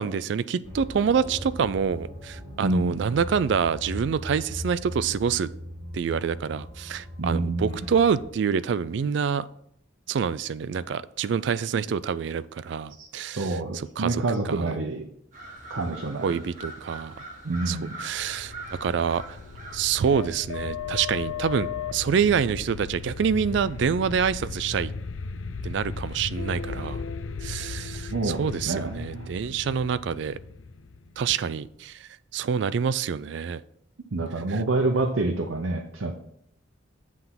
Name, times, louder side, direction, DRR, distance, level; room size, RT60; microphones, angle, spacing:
voice 1, 0.0-5.5 5.9-9.5 10.1-14.7 16.2-17.1 17.7-18.5 18.8-19.2 19.7-24.9 25.6-27.0 27.4-30.4 31.2-33.6 34.5-34.6, right 6 dB, 60° right, 17 dB, 0.3 m, -26 dB
sound 1, 0.6-8.2, equal, 20° left, 2.6 m, -39 dB
voice 2, 2.6-3.0 7.2-7.8 11.7-11.8 13.0-13.1 13.3-15.0 15.7-16.4 17.4-18.0 28.1-29.4 34.1-36.1, right 2 dB, 85° right, 3 dB, 0.7 m, -27 dB
sound 2, 15.3-20.3, right 2 dB, 40° right, 1.4 m, -43 dB
sound 3, 18.0-31.7, left 5 dB, 80° left, 0.5 m, -36 dB
7.9 x 3.6 x 5.8 m, 0.71 s
head